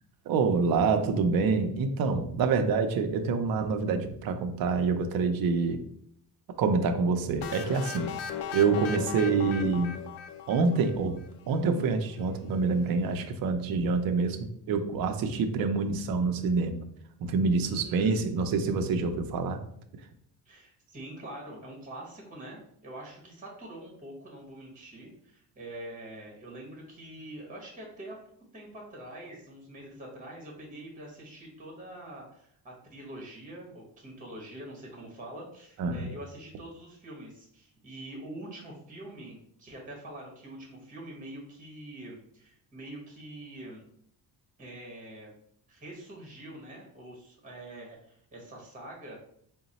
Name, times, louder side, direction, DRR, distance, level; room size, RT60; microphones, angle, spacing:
voice 1, 0.3-5.8 6.6-8.1 8.5-9.9 10.5-11.2 11.5-16.9 17.2-19.6 35.8-36.1, right 4 dB, 60° right, 6 dB, 0.5 m, -26 dB
sound 1, 7.4-11.2, left 8 dB, 85° left, 0.5 m, -37 dB
voice 2, 17.6-18.2 20.4-28.1 28.5-43.9 44.6-45.3 45.7-49.2, right 1 dB, 20° right, -2 dB, 1.0 m, -45 dB
3.8 x 2.1 x 4.0 m, 0.69 s
cardioid pair, 160°, 40 cm